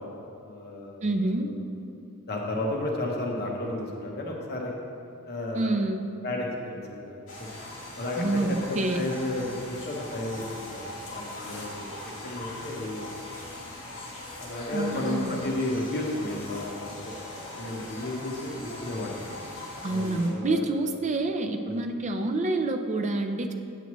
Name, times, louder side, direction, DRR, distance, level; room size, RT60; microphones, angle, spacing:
voice 1, 0.0-1.1 1.4-1.5 2.3-4.8 5.2-5.7 6.2-7.5 8.0-10.8 11.1-13.1 14.4-17.1 17.5-19.2 19.8-20.6 21.7-21.8, left 1 dB, 45° left, -1 dB, 0.9 m, -33 dB
voice 2, 1.0-1.5 5.5-6.0 8.2-9.1 14.7-15.3 19.8-23.5, right 2 dB, 30° right, 5 dB, 0.5 m, -27 dB
sound 1, 7.3-20.3, left 2 dB, 60° left, 1.9 m, -40 dB
8.2 x 7.9 x 3.1 m, 2.5 s
head